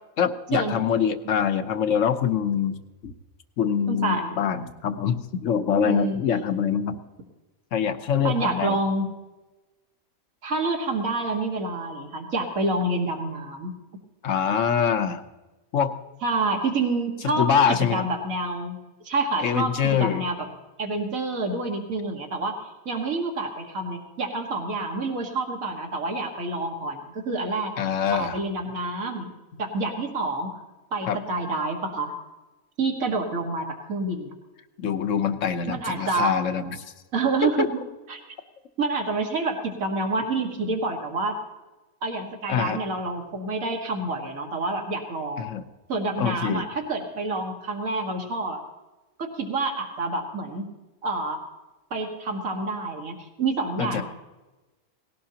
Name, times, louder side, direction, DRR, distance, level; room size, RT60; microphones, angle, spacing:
voice 1, 0.2-2.7 3.0-3.1 3.6-7.0 7.7-8.8 14.2-15.2 15.7-15.9 17.4-18.0 19.4-20.2 27.8-28.3 31.1-31.2 34.8-36.8 37.4-37.7 42.5-42.8 45.4-45.6 46.2-46.7 53.8-54.0, left 7 dB, 65° left, 9 dB, 1.2 m, -24 dB
voice 2, 3.9-4.4 5.8-6.2 8.2-9.1 10.4-13.7 16.2-18.8 19.0-20.5 20.8-27.7 28.1-29.3 29.6-30.6 30.9-32.1 32.8-34.3 35.7-36.3 37.1-37.7 38.1-38.2 38.8-41.4 42.0-45.5 45.9-48.6 49.2-50.6 51.0-51.4 51.9-54.0, right 2 dB, 70° right, 2 dB, 2.2 m, -28 dB
19.0 x 17.0 x 2.9 m, 1.1 s
omnidirectional pair, 1.5 m